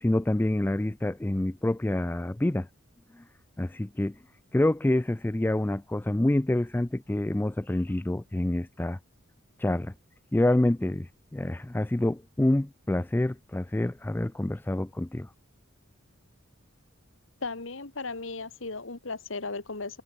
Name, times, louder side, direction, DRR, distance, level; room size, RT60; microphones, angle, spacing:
voice 1, 0.0-2.7 3.6-4.1 4.5-9.0 9.6-9.9 10.3-15.3, left 1 dB, 10° left, 0.3 m, -27 dB
voice 2, 17.4-20.0, left 3 dB, 70° left, 1.8 m, -36 dB
head